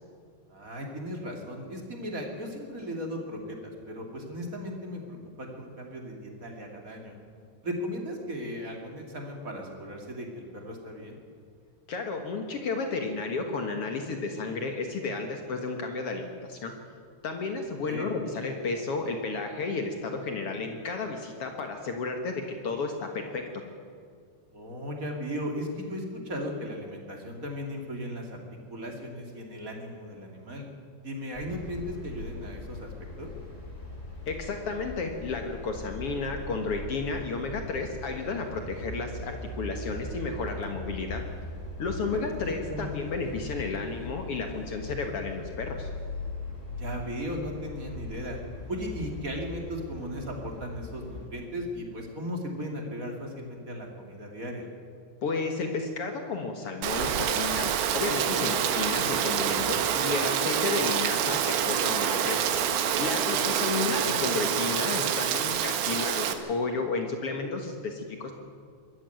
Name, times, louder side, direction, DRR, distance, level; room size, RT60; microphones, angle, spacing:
voice 1, 0.5-7.1 7.6-11.2 17.8-18.1 24.5-28.4 28.7-30.6 31.0-32.9 33.2-33.3 41.9-42.9 46.7-48.4 48.7-54.7 63.3-64.1, equal, 25° right, 1 dB, 2.2 m, -37 dB
voice 2, 11.9-16.7 17.2-23.4 34.3-41.2 41.8-45.9 55.2-62.4 63.0-68.3, left 4 dB, 80° left, 4 dB, 1.3 m, -32 dB
sound 1, 31.3-51.3, left 2 dB, 15° left, 3.3 m, -40 dB
Rain, 56.8-66.3, right 9 dB, 75° right, 3.3 m, -27 dB
23.0 x 13.5 x 9.3 m, 2.2 s
omnidirectional pair, 5.0 m